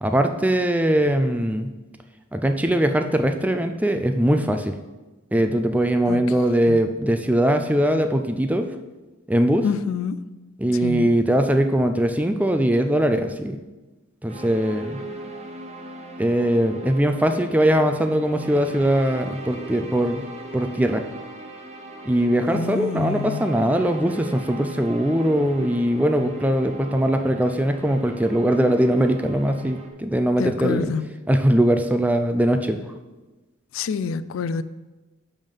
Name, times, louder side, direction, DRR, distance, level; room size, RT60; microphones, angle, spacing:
voice 1, 0.0-1.7 2.3-4.8 5.3-8.7 9.3-9.6 10.6-13.6 14.2-15.0 16.2-20.2 20.5-21.0 22.1-30.9 31.3-32.8, right 1 dB, 5° right, 0.4 m, -21 dB
voice 2, 9.6-10.2 10.8-11.1 22.5-23.5 30.4-31.2 33.7-34.6, left 6 dB, 85° left, 0.3 m, -27 dB
sound 1, 14.3-29.9, right 2 dB, 30° right, 0.8 m, -38 dB
10.5 x 3.6 x 5.4 m
head